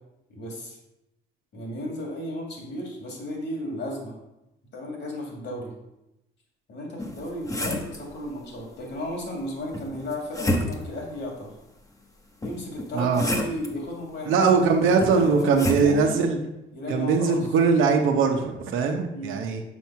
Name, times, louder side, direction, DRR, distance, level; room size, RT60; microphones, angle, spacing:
voice 1, 0.3-0.8 1.5-4.1 4.7-5.7 6.7-11.5 12.4-14.5 14.8-16.2 16.7-17.4 19.1-19.4, left 1 dB, 65° left, -1 dB, 2.7 m, -34 dB
sound 1, 7.0-8.0 9.7-11.0 12.4-13.7 15.0-15.9, left 1 dB, 15° left, 1.0 m, -29 dB
voice 2, 14.3-16.4 16.9-19.6, right 5 dB, 90° right, 3 dB, 1.1 m, -21 dB
6.3 x 4.6 x 5.9 m, 0.91 s
cardioid pair, 90°, 20 cm